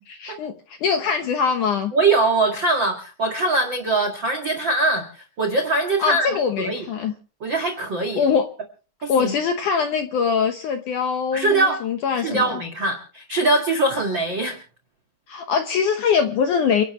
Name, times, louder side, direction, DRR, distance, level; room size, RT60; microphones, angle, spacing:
voice 1, 0.0-1.9 6.0-7.1 8.2-8.5 9.1-12.5 15.3-16.8, left 6 dB, 75° left, 6 dB, 1.8 m, -22 dB
voice 2, 1.9-6.9 7.4-8.2 9.0-9.3 11.3-11.8 12.1-14.6, right 2 dB, 45° right, 3 dB, 1.5 m, -22 dB
29.0 x 11.0 x 3.2 m, 0.38 s
omnidirectional pair, 5.1 m